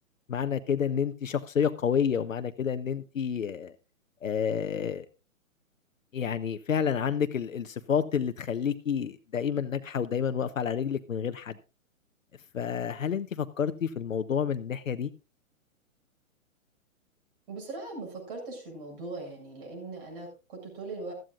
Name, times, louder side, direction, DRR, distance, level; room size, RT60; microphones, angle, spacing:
voice 1, 0.3-3.7 4.2-5.1 6.1-11.6 12.5-15.1, left 7 dB, 70° left, 1.1 m, -29 dB
voice 2, 17.5-21.1, right 3 dB, 40° right, 7.3 m, -40 dB
16.0 x 14.0 x 2.5 m
figure-of-eight pair, 125°, 41 cm